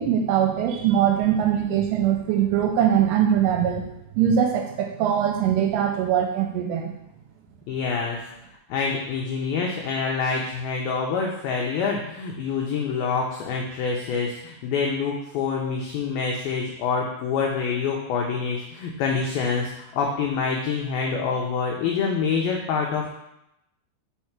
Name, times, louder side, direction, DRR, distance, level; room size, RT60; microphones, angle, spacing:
voice 1, 0.0-3.9 4.2-6.9, right 9 dB, 85° right, 3 dB, 2.5 m, -22 dB
voice 2, 7.7-8.2 8.7-23.1, left 5 dB, 90° left, 0 dB, 2.1 m, -26 dB
5.7 x 4.4 x 5.8 m, 0.83 s
omnidirectional pair, 5.2 m